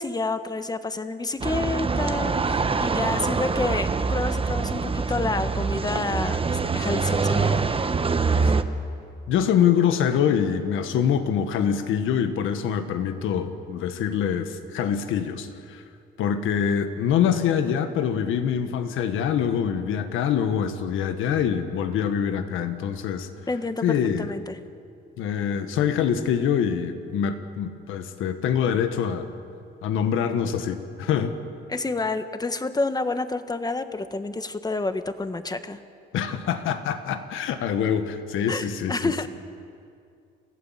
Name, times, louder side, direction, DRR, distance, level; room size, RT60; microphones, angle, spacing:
voice 1, 0.0-7.6 8.4-8.5 23.5-24.6 31.7-35.8 38.5-39.3, left 3 dB, 20° left, 10 dB, 1.3 m, -29 dB
sound 1, 1.4-8.6, right 4 dB, 30° right, 1.1 m, -24 dB
voice 2, 9.3-15.8 16.2-23.3 23.8-24.3 25.2-29.3 29.8-31.4 36.1-39.3, left 8 dB, 85° left, 8 dB, 1.5 m, -25 dB
29.0 x 15.5 x 7.5 m, 2.4 s
cardioid pair, 90°, 20 cm